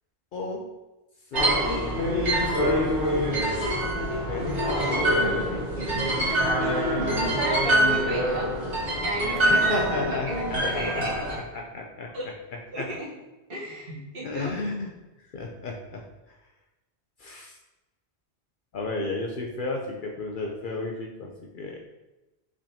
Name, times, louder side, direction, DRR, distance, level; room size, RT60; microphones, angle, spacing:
voice 1, 0.3-0.7 1.3-1.6 2.4-3.0 4.3-4.6 5.1-5.6 6.3-6.5 9.5-11.1 11.5-12.1 12.8-12.9 14.2-14.9 15.3-16.3 17.2-17.6 18.7-21.8, left 2 dB, 60° left, 0 dB, 0.6 m, -33 dB
sound 1, 1.3-11.3, equal, 85° right, 1.9 m, -25 dB
voice 2, 6.9-8.5 9.0-11.4 12.1-12.2 12.7-13.1 13.5-14.5, right 1 dB, 60° right, -6 dB, 1.4 m, -32 dB
5.0 x 3.5 x 2.7 m, 1.1 s
omnidirectional pair, 1.1 m